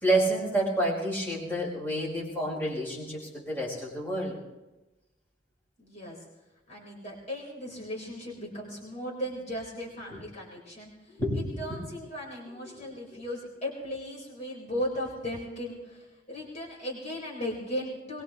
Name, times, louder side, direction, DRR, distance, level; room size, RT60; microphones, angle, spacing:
voice 1, 0.0-4.4 10.1-10.2 11.1-11.8 12.7-12.8, right 1 dB, 10° left, -6 dB, 5.0 m, -29 dB
voice 2, 5.8-6.2 6.7-18.2, equal, 40° left, -4 dB, 4.4 m, -37 dB
22.0 x 21.5 x 3.1 m, 1.1 s
head